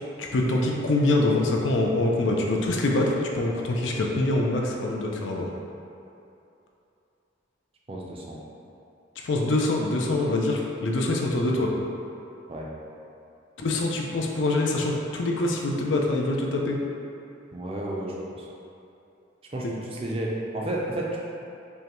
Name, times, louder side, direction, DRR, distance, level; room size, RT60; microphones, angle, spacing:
voice 1, 0.2-5.5 9.2-11.7 13.6-16.8 19.6-19.7, left 2 dB, 75° left, 0 dB, 0.5 m, -24 dB
voice 2, 7.9-8.4 12.5-12.7 17.5-18.5 19.5-21.2, right 1 dB, 30° right, -3 dB, 0.5 m, -32 dB
5.2 x 2.2 x 3.0 m, 2.7 s
head